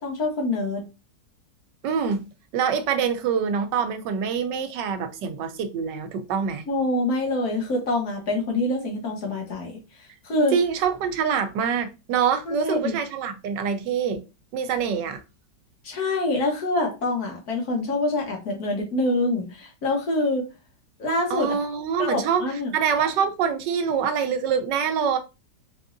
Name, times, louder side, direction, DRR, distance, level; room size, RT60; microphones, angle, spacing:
voice 1, 0.0-0.8 6.7-9.7 10.0-10.6 12.5-13.0 15.8-20.5 21.0-21.5 22.0-22.7, left 2 dB, 60° left, 1.7 m, -25 dB
voice 2, 1.8-2.3 2.5-6.6 10.5-14.2 14.5-15.2 21.3-25.2, right 7 dB, 85° right, 1.3 m, -25 dB
4.0 x 3.5 x 2.6 m
omnidirectional pair, 1.8 m